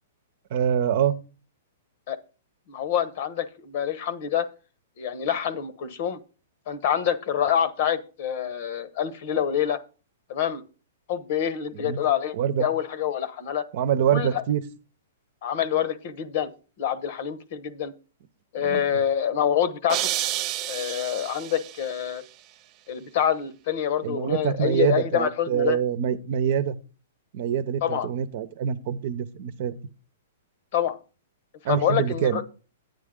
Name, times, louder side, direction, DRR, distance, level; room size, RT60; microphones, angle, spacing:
voice 1, 0.5-1.2 11.7-12.0 12.3-12.7 13.7-14.6 18.6-18.8 24.0-26.8 27.3-29.8 31.6-32.4, right 9 dB, 50° right, 12 dB, 0.9 m, -25 dB
voice 2, 2.7-4.5 5.0-6.2 6.7-9.8 10.3-10.6 11.1-13.6 14.1-14.4 15.4-16.5 16.8-17.9 18.5-20.1 20.7-22.2 22.9-25.8 27.8-28.1 30.7-31.0 31.7-32.4, left 9 dB, 50° left, 15 dB, 1.1 m, -26 dB
sound 1, 19.9-22.0, right 14 dB, 30° right, 0.5 m, -30 dB
9.4 x 9.3 x 3.8 m, 0.34 s
hypercardioid pair, 155°, 0 cm